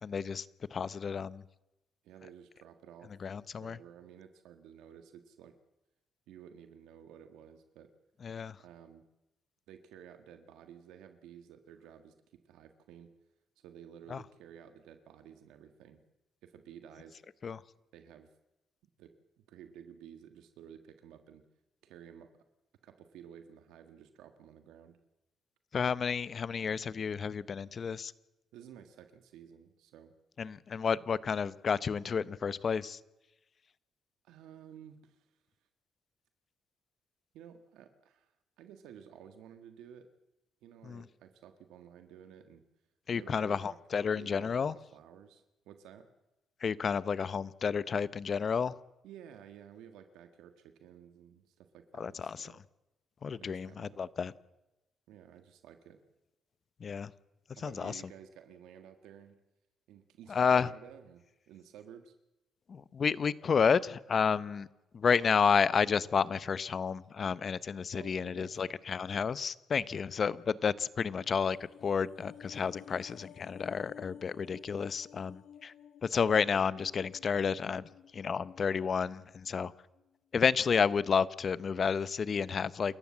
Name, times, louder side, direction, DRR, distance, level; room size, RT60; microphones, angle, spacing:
voice 1, 0.0-0.5 0.7-1.4 3.2-3.8 8.2-8.6 14.1-14.2 17.4-17.6 25.7-28.1 30.4-33.0 40.8-41.0 43.1-44.8 46.6-48.7 52.0-52.5 53.2-54.3 56.8-57.1 57.6-58.0 60.3-60.7 62.7-64.7 64.9-75.7 76.0-79.7 80.3-83.0, left 6 dB, 45° left, 18 dB, 0.9 m, -31 dB
voice 2, 2.0-3.1 3.6-5.5 6.3-7.9 8.6-9.0 9.7-12.1 12.4-13.1 13.6-16.0 16.4-17.2 17.9-18.3 19.0-21.4 21.8-22.3 22.8-25.0 28.5-30.1 34.2-35.3 37.3-38.3 38.6-40.1 40.6-42.6 43.1-46.1 49.0-52.6 53.4-54.0 55.1-56.0 57.5-59.4 59.9-62.1 67.9-68.5, right 9 dB, 90° right, 8 dB, 1.7 m, -53 dB
sound 1, 71.2-79.7 80.0-80.1, left 10 dB, 75° left, 1.2 m, -55 dB
28.5 x 14.5 x 7.4 m, 0.98 s
cardioid pair, 90°, 0 cm